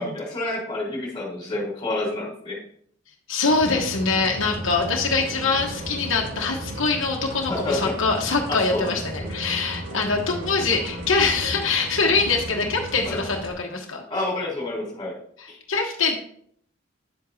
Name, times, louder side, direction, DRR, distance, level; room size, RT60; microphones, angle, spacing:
voice 1, 0.0-2.6 7.5-8.0 8.5-9.3 13.0-13.2 14.1-15.2 15.5-15.6, left 2 dB, 20° left, -3 dB, 3.9 m, -29 dB
voice 2, 3.3-14.0 15.4-16.2, left 4 dB, 80° left, 0 dB, 1.1 m, -24 dB
sound 1, 3.5-13.5, right 1 dB, 75° right, 1.4 m, -35 dB
10.0 x 7.8 x 2.8 m, 0.64 s
head